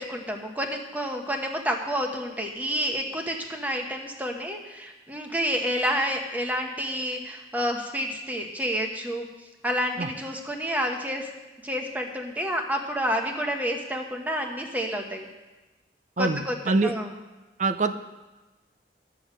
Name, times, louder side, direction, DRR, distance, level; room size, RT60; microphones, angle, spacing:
voice 1, 0.0-9.3 9.6-11.3 11.6-15.3 16.2-17.2, equal, 10° right, 2 dB, 1.1 m, -29 dB
voice 2, 16.2-16.9 17.6-17.9, right 3 dB, 45° right, 10 dB, 0.6 m, -24 dB
12.0 x 7.1 x 6.3 m, 1.1 s
head